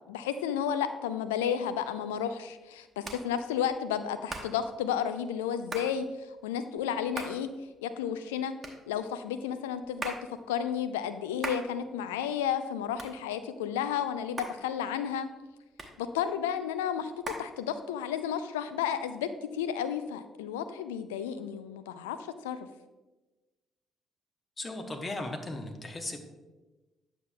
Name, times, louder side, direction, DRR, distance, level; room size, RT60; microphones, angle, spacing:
voice 1, 0.0-7.5 7.8-8.5 8.9-10.1 10.5-15.3 16.0-22.6, left 8 dB, 75° left, 11 dB, 0.3 m, -32 dB
Hands, 1.5-18.2, right 3 dB, 35° right, 1.1 m, -45 dB
voice 2, 24.6-26.2, left 2 dB, 30° left, 5 dB, 1.0 m, -37 dB
9.2 x 6.9 x 2.2 m, 1.1 s
figure-of-eight pair, 45°, 0 cm